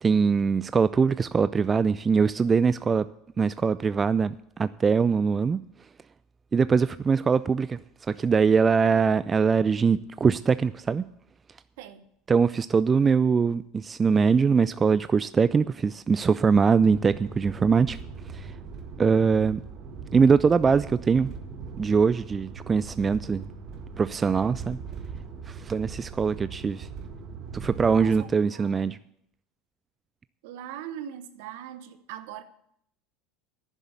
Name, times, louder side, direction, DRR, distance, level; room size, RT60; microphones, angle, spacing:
voice 1, 0.0-3.0 3.4-5.6 6.5-7.8 8.1-11.0 12.3-18.0 18.3-18.5 19.0-19.6 20.1-21.3 21.8-23.4 24.0-24.8 25.5-26.9 27.5-29.0, right 5 dB, 25° right, 0.3 m, -22 dB
sound 1, 16.8-28.3, right 5 dB, 50° right, 1.6 m, -40 dB
voice 2, 27.8-29.0 30.4-32.4, right 10 dB, 70° right, 1.1 m, -41 dB
11.0 x 7.2 x 8.2 m
hypercardioid pair, 80°, 0 cm